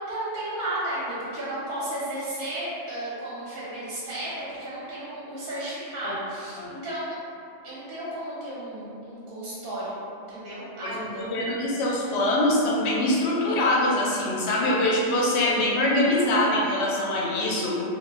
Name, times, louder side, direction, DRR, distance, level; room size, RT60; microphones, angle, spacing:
voice 1, 0.1-7.1 7.6-9.9 10.3-11.3, right 1 dB, 50° right, -9 dB, 0.7 m, -33 dB
voice 2, 10.8-17.7, left 1 dB, 65° left, -3 dB, 0.7 m, -24 dB
2.1 x 2.1 x 3.2 m, 2.6 s
omnidirectional pair, 1.4 m